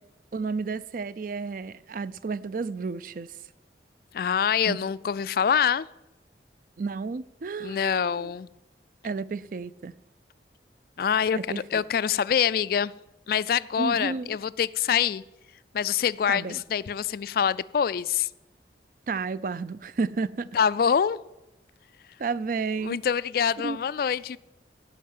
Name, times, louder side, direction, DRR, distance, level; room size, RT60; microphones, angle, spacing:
voice 1, 0.3-3.3 4.7-4.8 6.8-8.3 9.0-9.9 11.4-11.8 13.8-14.4 16.3-16.6 19.1-20.5 22.2-23.0 23.6-23.8, right 4 dB, 50° right, 0.4 m, -32 dB
voice 2, 4.1-5.9 7.6-8.5 11.0-11.4 11.7-12.9 13.3-15.2 15.7-18.3 20.5-21.2 22.8-24.4, left 7 dB, 55° left, 0.3 m, -25 dB
16.0 x 5.5 x 7.7 m
head